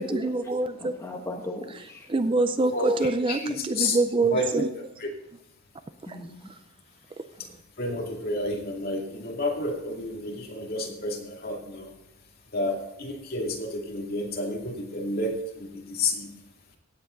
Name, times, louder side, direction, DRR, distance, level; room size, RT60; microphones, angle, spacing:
voice 1, 0.0-0.9 2.1-4.7 6.1-6.2, right 3 dB, 25° right, 10 dB, 0.4 m, -25 dB
voice 2, 0.8-2.1 6.1-6.5, left 1 dB, 15° left, 1 dB, 1.1 m, -37 dB
voice 3, 2.7-4.6 5.0-5.1 7.8-11.9 12.5-16.3, left 2 dB, 45° left, -1 dB, 2.5 m, -30 dB
17.0 x 8.0 x 3.9 m, 0.86 s
head